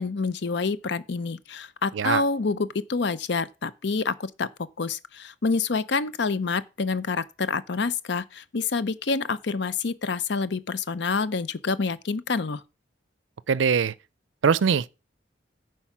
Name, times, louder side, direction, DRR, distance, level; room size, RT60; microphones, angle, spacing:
voice 1, 0.0-4.5 4.8-12.6, left 4 dB, 65° left, 0.6 m, -27 dB
voice 2, 13.5-13.9 14.4-14.9, right 6 dB, 85° right, 0.4 m, -21 dB
10.0 x 4.7 x 6.0 m
head